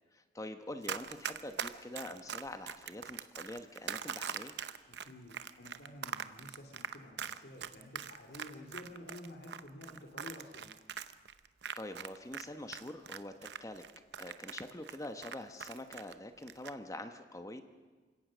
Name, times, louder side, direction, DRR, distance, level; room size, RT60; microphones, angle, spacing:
voice 1, 0.1-4.5 11.8-13.3 13.6-13.8 14.2-17.6, left 1 dB, 20° left, 8 dB, 1.0 m, -45 dB
Run, 0.8-12.4 12.7-16.1 16.4-16.7, right 7 dB, 70° right, 0.8 m, -41 dB
voice 2, 4.9-10.7, left 1 dB, 65° left, 3 dB, 2.4 m, -50 dB
28.0 x 17.0 x 6.2 m, 1.4 s
head